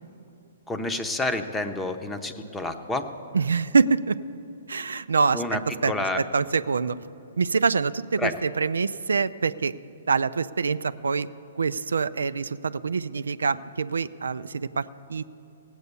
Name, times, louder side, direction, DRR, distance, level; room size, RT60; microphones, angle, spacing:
voice 1, 0.7-3.1 5.3-6.2 8.2-8.4, left 2 dB, 10° left, 7 dB, 0.8 m, -29 dB
voice 2, 3.3-4.2 4.7-7.0 7.4-9.7 10.1-11.3 11.6-15.2, right 5 dB, 85° right, 14 dB, 0.4 m, -25 dB
17.0 x 8.1 x 6.9 m, 2.7 s
hypercardioid pair, 135°, 0 cm